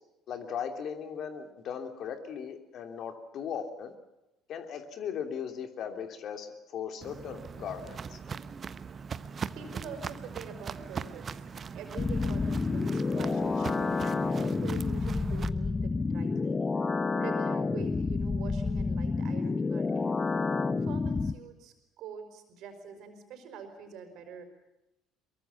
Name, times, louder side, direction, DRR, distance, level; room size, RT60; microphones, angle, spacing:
voice 1, 0.3-3.9 4.5-8.2, left 7 dB, 50° left, 6 dB, 3.0 m, -38 dB
Walk footsteps, 7.0-15.5, right 6 dB, 35° right, 1.1 m, -40 dB
voice 2, 9.5-11.4 11.7-16.7 17.1-20.2 20.8-24.4, right 5 dB, 55° right, 7 dB, 5.0 m, -45 dB
sound 1, 12.0-21.3, left 4 dB, 25° left, 1.1 m, -29 dB
23.0 x 23.0 x 7.2 m, 0.94 s
figure-of-eight pair, 55°, 0 cm